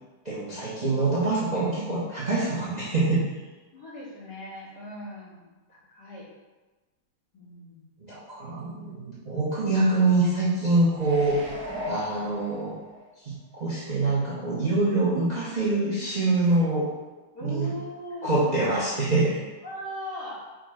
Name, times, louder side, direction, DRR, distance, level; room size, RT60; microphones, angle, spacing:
voice 1, 0.2-3.2 8.0-11.4 11.9-12.8 13.2-16.9 17.4-17.7 18.2-19.4, right 2 dB, 40° right, -8 dB, 0.6 m, -25 dB
voice 2, 3.7-6.3 7.3-7.9 8.4-8.6 17.3-18.6 19.6-20.5, left 1 dB, 65° left, -8 dB, 2.0 m, -39 dB
sound 1, 11.0-13.0 13.5-13.6, left 1 dB, 60° right, 1.3 m, -37 dB
4.9 x 2.2 x 4.8 m, 1.2 s
omnidirectional pair, 2.0 m